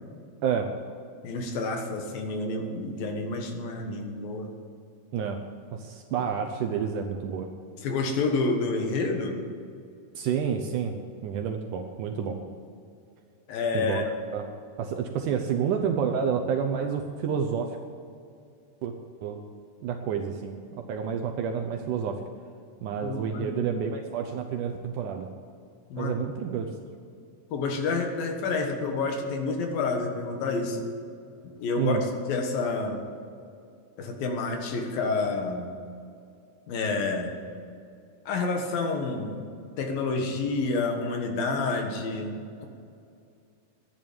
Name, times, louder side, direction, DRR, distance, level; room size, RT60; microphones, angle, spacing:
voice 1, 1.2-4.5 7.8-9.4 13.5-14.0 23.0-23.7 25.9-26.1 27.5-30.8 31.6-32.0 32.3-33.1 34.0-35.7 36.7-37.3 38.3-39.5 39.8-42.7, left 3 dB, 75° left, 3 dB, 3.2 m, -29 dB
voice 2, 5.7-7.5 10.1-11.0 11.2-12.4 13.7-14.0 14.3-14.5 14.8-17.8 18.8-18.9 19.2-19.4 19.8-22.2 22.8-25.3 26.0-26.7 31.8-32.0, right 7 dB, 75° right, 4 dB, 2.0 m, -29 dB
12.5 x 10.0 x 8.8 m, 2.4 s
omnidirectional pair, 4.3 m